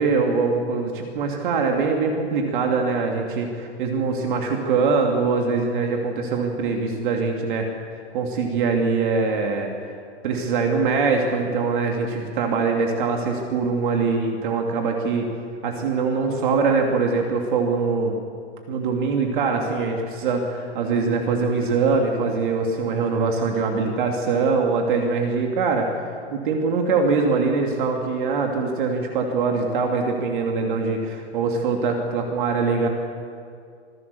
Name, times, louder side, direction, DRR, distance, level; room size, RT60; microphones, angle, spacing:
voice 1, 0.0-7.7 8.1-9.7 10.2-15.3 15.6-18.2 18.7-25.9 26.3-32.9, right 4 dB, 45° right, 2 dB, 2.7 m, -23 dB
26.0 x 17.0 x 7.0 m, 2.3 s
hypercardioid pair, 160°, 35 cm